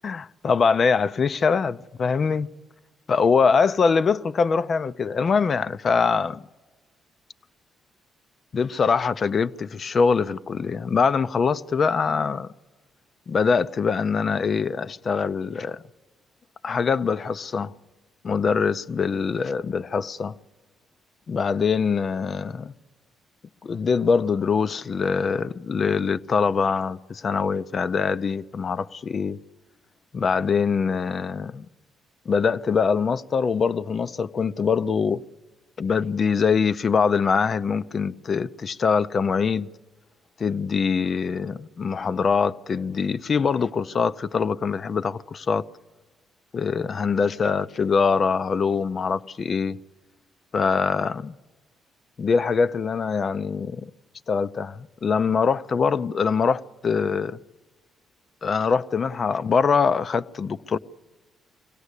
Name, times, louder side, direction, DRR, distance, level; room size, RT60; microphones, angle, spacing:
voice 1, 0.0-2.5 3.1-6.4 8.5-12.5 13.3-15.8 16.6-17.7 18.2-20.3 21.3-22.7 23.6-29.4 30.1-31.7 32.3-35.2 35.8-39.7 40.4-45.6 46.5-49.8 50.5-51.4 52.2-53.9 54.3-57.4 58.4-60.8, left 5 dB, 45° left, 0.6 m, -23 dB
24.0 x 17.0 x 8.2 m
cardioid pair, 90°, 0 cm